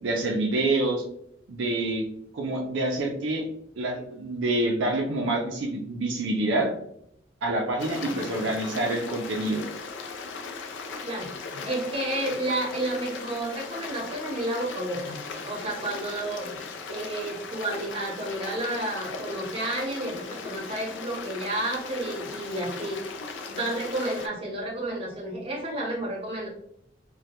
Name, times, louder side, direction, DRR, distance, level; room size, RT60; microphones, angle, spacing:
voice 1, 0.0-1.0 1.5-2.0 2.3-3.5 3.8-6.7 7.4-9.6, right 2 dB, 70° right, 0 dB, 0.4 m, -27 dB
Stream, 7.8-24.3, left 4 dB, 70° left, 0.3 m, -38 dB
voice 2, 7.9-8.5 11.0-16.6 16.9-26.5, right 1 dB, 30° right, -3 dB, 0.8 m, -31 dB
2.1 x 2.1 x 2.7 m, 0.71 s
head